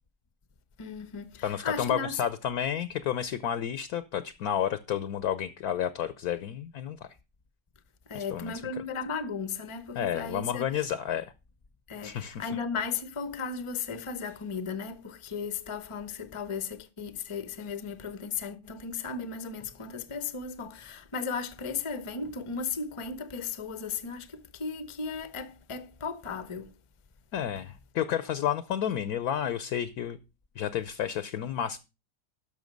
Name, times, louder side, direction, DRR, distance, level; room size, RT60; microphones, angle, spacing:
voice 1, 0.8-2.2 8.1-10.7 11.9-26.7, left 5 dB, 25° left, 0.6 m, -36 dB
voice 2, 1.4-7.0 8.1-8.5 9.9-11.3 12.0-12.5 27.3-30.2 30.5-31.8, left 9 dB, 65° left, 1.1 m, -31 dB
12.5 x 6.2 x 5.2 m
omnidirectional pair, 1.9 m